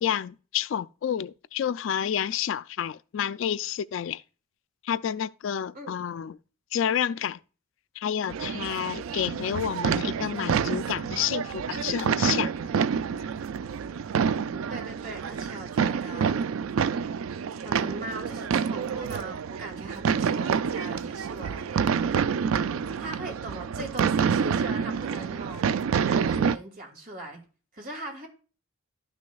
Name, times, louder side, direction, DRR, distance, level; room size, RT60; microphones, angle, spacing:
voice 1, 0.0-4.2 4.8-6.4 6.7-7.4 8.0-12.5, left 9 dB, 65° left, 0.3 m, -29 dB
sound 1, 8.3-26.6, right 6 dB, 80° right, 0.4 m, -28 dB
voice 2, 14.5-16.5 17.6-22.1 23.0-27.4 27.7-28.3, right 1 dB, 45° right, 2.5 m, -40 dB
12.0 x 6.2 x 2.3 m
head